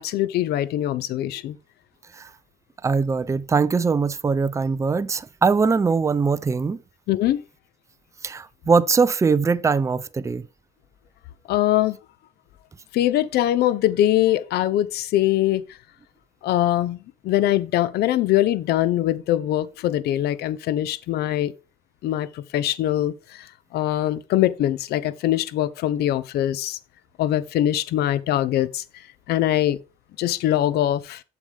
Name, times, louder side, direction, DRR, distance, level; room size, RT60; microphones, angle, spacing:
voice 1, 0.0-1.6 7.1-7.4 11.5-12.0 12.9-15.6 16.4-21.5 22.0-23.5 23.7-26.8 27.2-28.8 29.3-29.8 30.2-31.2, left 13 dB, 75° left, 0.7 m, -22 dB
voice 2, 2.8-6.8 8.2-10.4, right 5 dB, 15° right, 0.5 m, -21 dB
8.3 x 7.0 x 3.4 m
cardioid pair, 110°, 17 cm